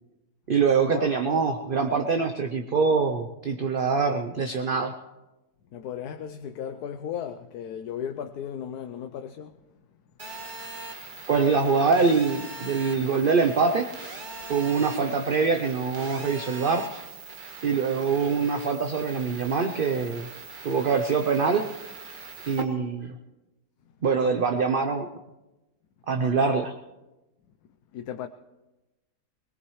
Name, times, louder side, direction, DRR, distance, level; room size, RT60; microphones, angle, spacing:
voice 1, 0.5-5.0 11.3-13.9 14.5-16.9 17.6-20.3 20.6-21.7 22.5-23.2 24.0-25.1 26.1-26.7, right 5 dB, 50° right, 0.7 m, -24 dB
voice 2, 5.7-9.6 23.9-24.0 27.9-28.3, left 8 dB, 70° left, 1.2 m, -35 dB
Telephone, 10.2-22.6, right 3 dB, 30° right, 1.5 m, -41 dB
21.5 x 20.5 x 3.2 m
omnidirectional pair, 1.7 m